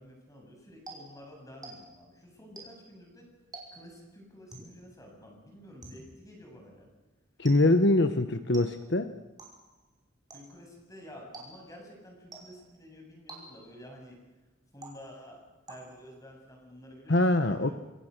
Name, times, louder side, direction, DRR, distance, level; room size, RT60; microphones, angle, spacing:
voice 1, 0.0-3.3 3.7-6.9 10.3-14.2 14.7-15.4 15.7-17.7, equal, 15° left, 1 dB, 7.8 m, -50 dB
sound 1, 0.9-2.1 2.6-3.0 3.5-4.0 4.5-4.9 5.8-6.3 7.4-7.9 8.5-9.0 9.4-9.8 10.3-10.7 11.3-11.8 12.3-12.8 13.3-13.8 14.8-15.3 15.7-16.2, right 2 dB, 20° right, 5.7 m, -49 dB
voice 2, 7.4-9.1 17.1-17.7, left 2 dB, 60° left, 9 dB, 1.1 m, -23 dB
27.0 x 26.5 x 6.7 m, 1.1 s
head